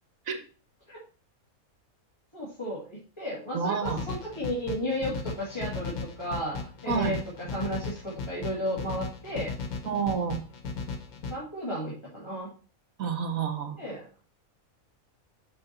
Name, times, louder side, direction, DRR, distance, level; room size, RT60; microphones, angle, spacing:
voice 1, 2.3-9.5 11.3-12.5 13.8-14.0, equal, 20° left, -8 dB, 2.2 m, -34 dB
voice 2, 3.5-4.0 6.9-7.2 9.8-10.4 13.0-13.8, right 6 dB, 70° right, 6 dB, 1.4 m, -29 dB
sound 1, 3.8-11.3, left 4 dB, 90° left, 1.5 m, -36 dB
6.2 x 5.2 x 4.2 m, 0.36 s
omnidirectional pair, 1.5 m